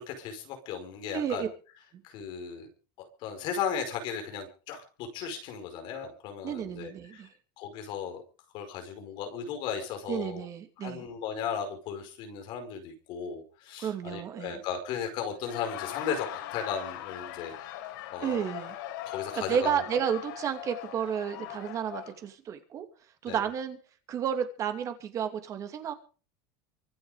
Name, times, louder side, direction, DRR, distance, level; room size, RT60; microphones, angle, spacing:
voice 1, 0.0-1.5 2.0-2.7 3.0-4.8 5.1-7.2 7.6-8.2 8.5-10.4 10.8-17.5 18.1-18.4 19.0-19.8 23.3-23.4, left 7 dB, 50° left, 5 dB, 5.1 m, -36 dB
voice 2, 1.1-1.5 6.4-7.3 10.1-11.1 13.8-14.6 18.2-18.7 19.3-22.9 23.2-23.8 24.1-25.9, right 8 dB, 30° right, 7 dB, 2.7 m, -31 dB
Laughter, 15.3-22.2, left 12 dB, 85° left, 4.0 m, -40 dB
24.5 x 9.4 x 5.1 m, 0.37 s
cardioid pair, 165°, 11 cm